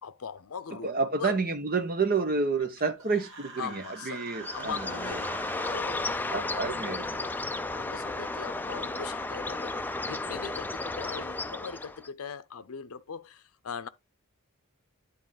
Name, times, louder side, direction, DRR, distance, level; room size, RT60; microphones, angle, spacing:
voice 1, 0.0-1.4 2.8-2.9 3.6-4.3 4.5-5.3 5.7-6.4 7.1-13.9, left 6 dB, 75° left, 0.6 m, -40 dB
voice 2, 0.8-5.2 6.3-7.2, right 4 dB, 40° right, 1.0 m, -29 dB
Human voice, 3.0-5.8, right 3 dB, 60° right, 1.8 m, -44 dB
Bird, 4.4-12.1, left 2 dB, 10° left, 0.3 m, -34 dB
9.9 x 4.1 x 3.9 m
head